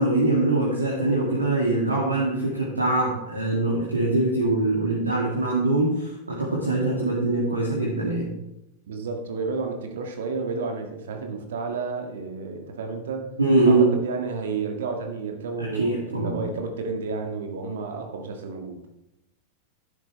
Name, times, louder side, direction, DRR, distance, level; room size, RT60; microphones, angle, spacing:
voice 1, 0.0-8.3 13.4-13.9 15.6-16.4, right 2 dB, 80° right, -4 dB, 2.4 m, -23 dB
voice 2, 8.9-13.2 13.6-18.8, right 4 dB, 60° right, 4 dB, 1.8 m, -31 dB
11.5 x 10.5 x 3.3 m, 0.86 s
figure-of-eight pair, 90°, 0 cm